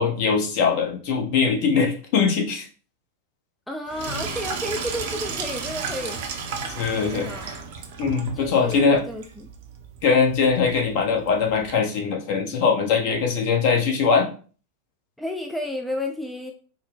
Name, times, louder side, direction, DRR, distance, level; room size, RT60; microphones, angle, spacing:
voice 1, 0.0-2.6 6.8-7.3 8.0-9.0 10.0-14.3, left 5 dB, 45° left, 1 dB, 0.9 m, -21 dB
voice 2, 3.7-6.2 7.0-7.5 8.4-9.2 15.2-16.5, left 1 dB, 5° left, 2 dB, 0.4 m, -31 dB
Sink (filling or washing), 3.9-11.7, right 5 dB, 50° right, 0.6 m, -34 dB
4.3 x 2.1 x 3.5 m, 0.38 s
figure-of-eight pair, 90°, 0 cm